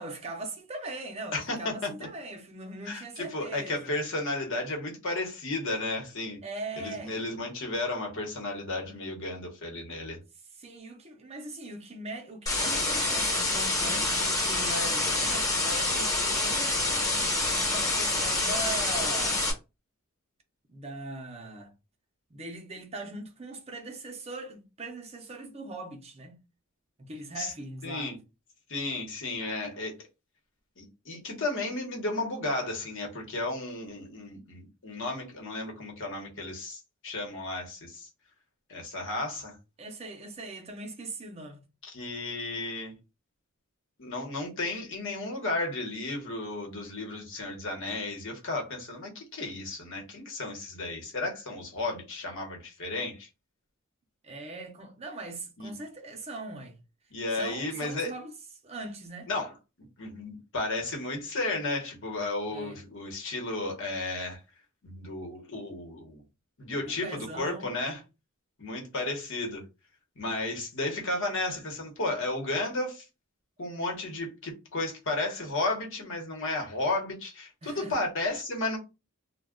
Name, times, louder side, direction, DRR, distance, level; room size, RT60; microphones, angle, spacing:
voice 1, 0.0-3.9 6.4-7.2 10.6-16.8 17.5-19.5 20.7-21.7 22.3-26.4 27.0-28.1 29.4-29.5 39.8-41.6 54.2-56.8 57.3-58.3 58.6-59.3 62.5-62.8 66.9-67.7 77.6-77.9, right 2 dB, 30° right, 0.6 m, -40 dB
voice 2, 2.9-6.4 6.8-10.2 27.4-27.5 27.8-28.2 28.7-30.0 30.8-38.1 38.7-39.6 41.8-42.9 44.0-53.3 55.6-55.7 57.1-58.1 59.3-59.5 60.0-64.4 64.8-66.2 66.6-68.0 68.6-69.6 70.2-73.0 73.6-78.8, left 2 dB, 60° left, 1.1 m, -33 dB
sound 1, 12.5-19.5, left 2 dB, 15° left, 0.8 m, -27 dB
2.3 x 2.2 x 3.6 m
head